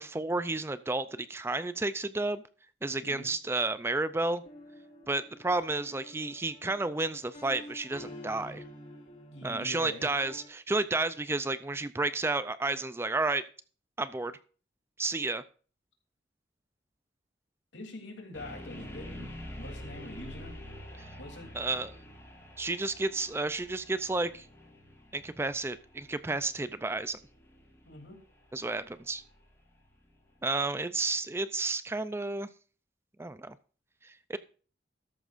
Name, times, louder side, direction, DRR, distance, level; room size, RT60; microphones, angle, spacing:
voice 1, 0.0-2.4 2.8-4.4 5.1-8.6 9.4-13.4 14.0-14.4 15.0-15.4 21.0-21.1 21.5-21.9 22.6-24.5 25.1-27.2 28.5-29.2 30.4-32.5 33.2-33.6 34.0-34.4, right 2 dB, 15° right, 13 dB, 0.4 m, -31 dB
sound 1, 4.4-10.5, left 1 dB, 45° left, 2.5 m, -49 dB
voice 2, 9.3-10.1 17.7-19.3 19.6-20.5 21.2-21.5 27.8-28.3, left 1 dB, 85° left, 2 dB, 3.1 m, -44 dB
sound 2, 18.3-30.3, equal, 15° left, 4.2 m, -47 dB
13.5 x 11.0 x 2.5 m, 0.40 s
head